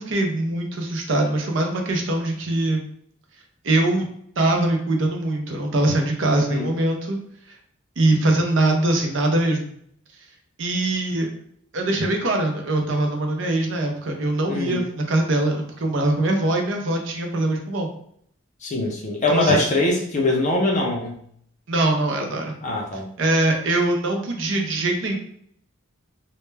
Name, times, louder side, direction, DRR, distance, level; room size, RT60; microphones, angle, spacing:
voice 1, 0.0-2.9 3.6-4.1 4.4-7.2 8.0-9.7 10.6-11.3 11.7-17.9 19.3-19.6 21.7-22.5 23.2-25.2, right 2 dB, 60° right, 2 dB, 0.5 m, -22 dB
voice 2, 6.3-6.7 14.4-14.9 18.6-21.2 22.6-23.1, left 2 dB, 35° left, 0 dB, 0.5 m, -23 dB
2.1 x 2.1 x 3.2 m, 0.65 s
head